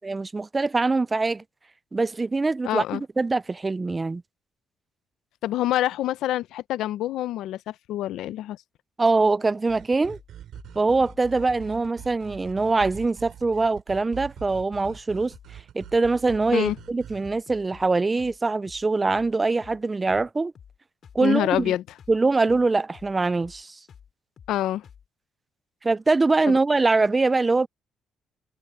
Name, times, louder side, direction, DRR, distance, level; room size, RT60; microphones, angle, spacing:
voice 1, 0.0-1.4 1.9-4.2 9.0-10.2 10.8-20.5 21.1-21.7 22.1-23.8 25.8-27.7, right 3 dB, 25° right, 0.4 m, -23 dB
voice 2, 2.6-3.0 5.4-8.6 16.5-16.8 21.2-21.8 24.5-24.8 26.5-26.6, left 13 dB, 85° left, 0.6 m, -26 dB
sound 1, 9.7-17.3, right 10 dB, 75° right, 3.1 m, -43 dB
sound 2, 10.1-10.3 10.6-10.8 11.0-11.2 11.5-11.7 12.0-12.2 12.5-12.7 12.9-13.1 13.4-13.6 13.9-14.1 14.4-14.6 14.8-15.1 15.3-15.5 15.8-16.0 16.3-16.5 16.7-17.0 17.2-17.9 18.2-18.4 18.6-18.9 19.1-19.3 19.6-19.8 20.1-20.3 20.5-20.8 21.0-21.2 21.5-21.7 22.0-22.2 22.5-22.7 22.9-23.1 23.4-23.6 23.9-24.1 24.4-24.6 24.8-25.1, left 7 dB, 55° left, 6.7 m, -50 dB
cardioid pair, 90°, 0 cm